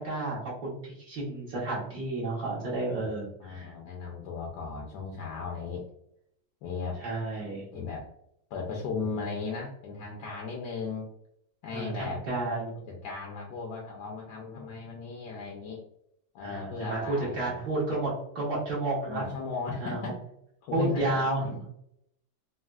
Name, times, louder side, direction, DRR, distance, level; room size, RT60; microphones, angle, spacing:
voice 1, 0.0-3.7 7.0-7.6 11.7-12.7 16.4-19.2 19.8-20.0 20.7-21.6, right 2 dB, 70° right, -7 dB, 1.5 m, -31 dB
voice 2, 3.0-5.8 6.6-7.0 7.7-8.1 8.5-11.1 11.6-12.2 12.9-15.8 16.3-17.6 19.1-20.2 20.6-21.7, left 4 dB, 75° left, -1 dB, 1.2 m, -36 dB
4.1 x 2.0 x 2.3 m, 0.75 s
omnidirectional pair, 1.8 m